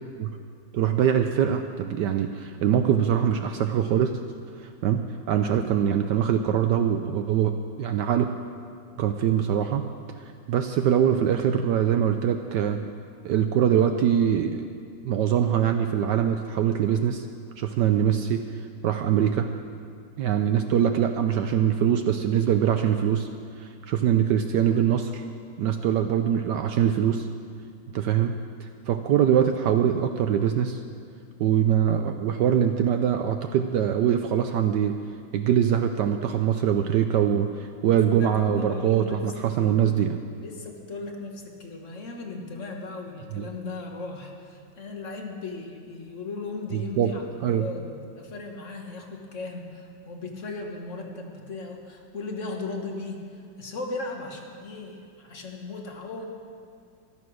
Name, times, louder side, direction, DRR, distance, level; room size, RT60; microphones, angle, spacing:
voice 1, 0.7-4.1 4.6-8.3 9.0-9.8 10.2-12.8 13.2-14.7 15.0-17.2 17.6-19.5 20.2-23.3 23.6-25.2 25.6-27.3 27.9-30.8 31.4-35.0 35.3-40.2 43.3-43.5 46.7-47.1 47.4-47.7, right 9 dB, 70° right, 7 dB, 1.1 m, -23 dB
voice 2, 37.8-39.3 39.6-39.9 40.4-56.3, left 3 dB, 40° left, 2 dB, 1.6 m, -37 dB
14.0 x 12.5 x 6.3 m, 2.2 s
omnidirectional pair, 2.1 m